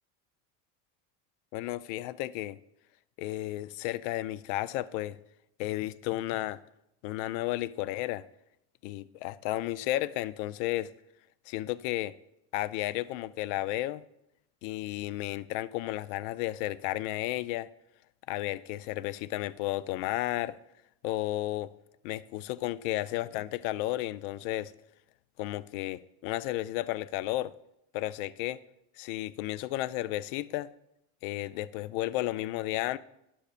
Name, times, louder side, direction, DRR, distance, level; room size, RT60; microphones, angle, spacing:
voice 1, 1.5-2.6 3.2-5.2 5.6-6.6 7.0-8.2 8.8-10.9 11.5-12.1 12.5-14.0 14.6-17.7 18.3-20.6 21.0-21.7 22.0-24.7 25.4-27.5 27.9-28.6 29.0-30.7 31.2-33.0, left 16 dB, 75° left, 0.5 m, -33 dB
12.0 x 10.0 x 2.5 m
cardioid pair, 155°, 38 cm